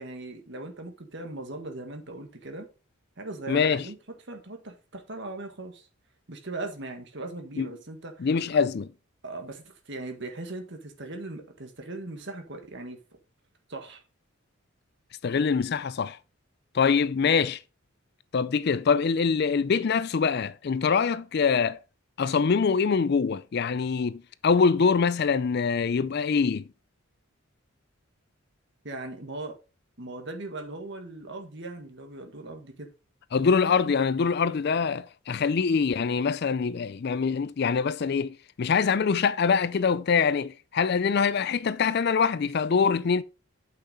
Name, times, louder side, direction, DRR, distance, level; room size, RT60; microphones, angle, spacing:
voice 1, 0.0-2.7 3.2-4.0 4.3-5.9 6.3-8.7 9.2-13.0 13.7-14.0 28.8-29.6 30.0-32.9, right 2 dB, 55° right, 1.7 m, -39 dB
voice 2, 3.5-3.8 7.6-7.7 8.2-8.9 15.2-16.2 16.7-17.6 18.3-21.8 22.2-26.6 33.3-43.2, left 5 dB, 50° left, 0.4 m, -24 dB
8.5 x 6.0 x 4.0 m
head